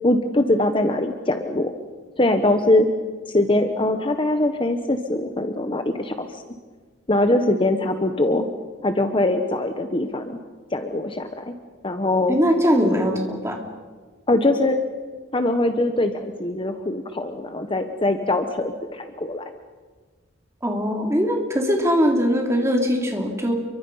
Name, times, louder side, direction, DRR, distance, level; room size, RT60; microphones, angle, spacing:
voice 1, 0.0-1.7 2.2-2.9 3.3-6.4 7.1-8.5 8.8-10.4 10.7-11.5 11.8-12.4 14.3-14.8 15.3-19.5, left 1 dB, 25° left, 7 dB, 1.1 m, -22 dB
voice 2, 12.3-13.6 20.6-23.5, equal, 15° right, 1 dB, 3.4 m, -21 dB
29.0 x 24.0 x 5.6 m, 1.4 s
head